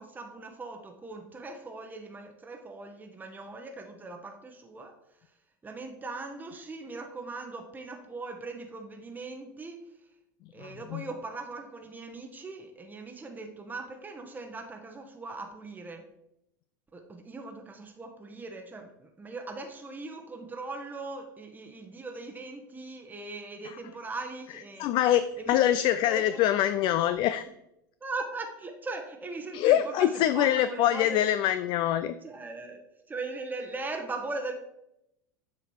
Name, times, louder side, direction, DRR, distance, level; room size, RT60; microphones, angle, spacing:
voice 1, 0.0-5.0 5.6-9.9 10.5-16.1 16.9-24.9 25.4-25.6 25.9-26.4 28.0-31.3 32.2-34.5, right 3 dB, 15° right, 3 dB, 1.0 m, -40 dB
voice 2, 24.8-25.2 25.5-27.4 29.5-32.1, left 12 dB, 45° left, 12 dB, 0.4 m, -24 dB
7.3 x 4.0 x 4.6 m, 0.82 s
hypercardioid pair, 85°, 11 cm